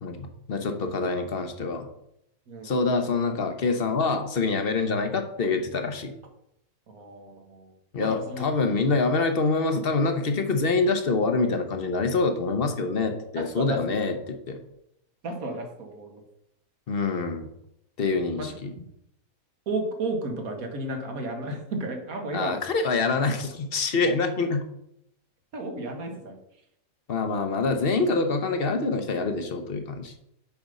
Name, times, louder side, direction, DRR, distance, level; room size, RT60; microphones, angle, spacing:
voice 1, 0.0-1.9 2.6-6.1 7.9-14.6 16.9-17.5 18.0-18.7 22.3-24.6 27.1-30.1, left 3 dB, 45° left, 6 dB, 1.0 m, -26 dB
voice 2, 6.9-7.7 8.0-8.5 13.4-13.8 15.2-16.2 18.4-18.5 19.7-22.6 24.1-24.2 25.5-26.4, right 2 dB, 80° right, 3 dB, 1.8 m, -33 dB
7.2 x 5.1 x 5.3 m, 0.78 s
omnidirectional pair, 1.5 m